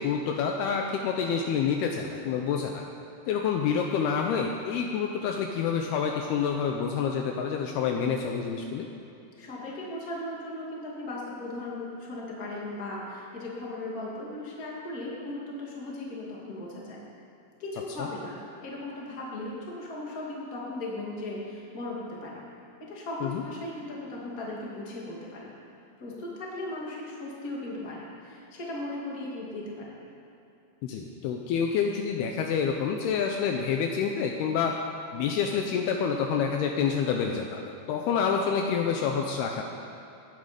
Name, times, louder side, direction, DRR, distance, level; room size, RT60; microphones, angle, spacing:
voice 1, 0.0-2.8 3.3-8.9 18.0-18.1 23.2-23.4 30.8-34.7 35.1-37.6 37.9-39.6, left 6 dB, 75° left, 2 dB, 2.6 m, -28 dB
voice 2, 9.4-17.0 17.6-22.4 22.8-25.5 26.0-29.9, left 2 dB, 25° left, -4 dB, 2.2 m, -37 dB
17.0 x 10.5 x 5.2 m, 2.9 s
omnidirectional pair, 4.9 m